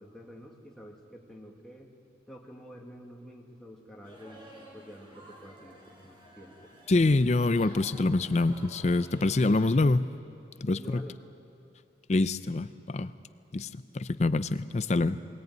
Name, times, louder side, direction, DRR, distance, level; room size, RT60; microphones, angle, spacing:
voice 1, 0.0-1.9 2.3-6.6 10.8-11.2, equal, 5° left, -2 dB, 1.9 m, -49 dB
sound 1, 4.0-9.7, right 1 dB, 30° right, 4.7 m, -52 dB
voice 2, 6.9-10.1 10.6-11.0 12.1-13.1 13.5-13.7 13.9-15.2, left 2 dB, 35° left, 13 dB, 0.5 m, -25 dB
22.0 x 17.5 x 9.3 m, 2.5 s
head